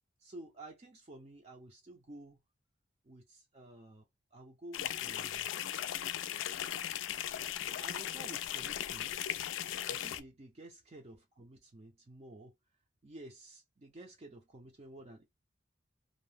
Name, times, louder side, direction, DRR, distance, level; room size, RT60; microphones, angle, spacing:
voice 1, 0.2-2.4 3.0-4.0 4.3-5.8 7.7-9.5 9.9-12.5 13.0-15.2, right 1 dB, 35° right, 0.4 m, -52 dB
sound 1, 4.7-10.2, left 11 dB, 80° left, 0.3 m, -37 dB
2.7 x 2.0 x 3.3 m
head